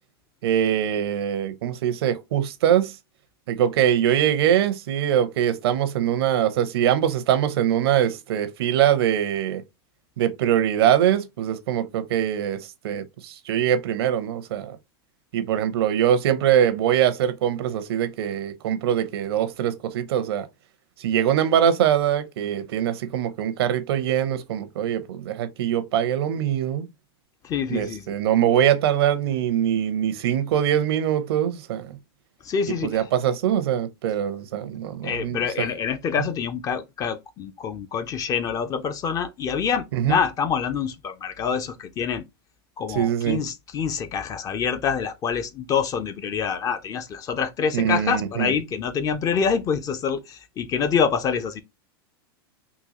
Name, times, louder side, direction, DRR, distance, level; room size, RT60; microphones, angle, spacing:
voice 1, 0.4-2.9 3.5-9.6 10.2-14.8 15.3-20.5 21.0-26.9 27.7-32.0 32.8-35.7 39.9-40.2 42.9-43.4 47.7-48.5, right 10 dB, 75° right, 0.6 m, -23 dB
voice 2, 27.4-28.1 32.4-33.1 35.0-42.2 42.8-51.6, left 6 dB, 25° left, 0.4 m, -26 dB
3.8 x 2.3 x 2.8 m
hypercardioid pair, 125°, 13 cm